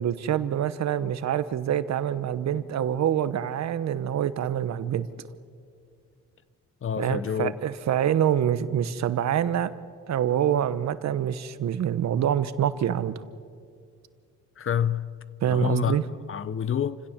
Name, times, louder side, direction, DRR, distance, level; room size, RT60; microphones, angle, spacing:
voice 1, 0.0-5.1 7.0-9.7 10.1-13.2 15.4-16.0, right 9 dB, 60° right, 1.1 m, -26 dB
voice 2, 6.8-7.5 14.6-15.1 15.4-16.0 16.3-17.0, left 8 dB, 45° left, 0.9 m, -27 dB
29.0 x 16.5 x 7.4 m
cardioid pair, 90°, 30 cm